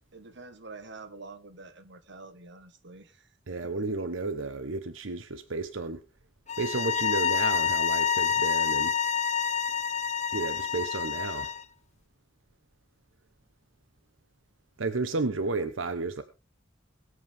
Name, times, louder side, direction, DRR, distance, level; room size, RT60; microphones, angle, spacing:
voice 1, 0.1-3.4 3.8-3.9, right 3 dB, 65° right, 1.5 m, -47 dB
voice 2, 3.5-6.0 6.6-9.0 10.3-11.5 14.8-16.2, right 3 dB, 90° right, 1.0 m, -32 dB
sound 1, 6.5-11.6, left 7 dB, 35° left, 0.7 m, -28 dB
22.0 x 8.3 x 3.5 m
head